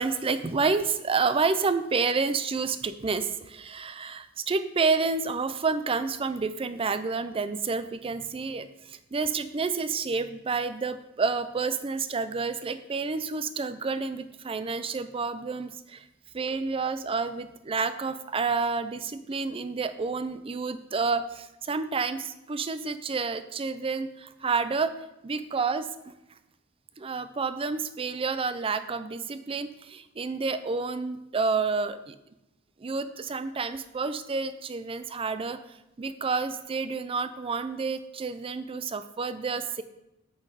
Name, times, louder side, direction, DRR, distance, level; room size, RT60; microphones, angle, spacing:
voice 1, 0.0-16.0 16.3-25.0 25.2-26.1 27.0-32.1 32.8-35.6 36.0-39.8, right 4 dB, 25° right, 12 dB, 0.4 m, -29 dB
7.7 x 5.5 x 4.7 m, 0.91 s
head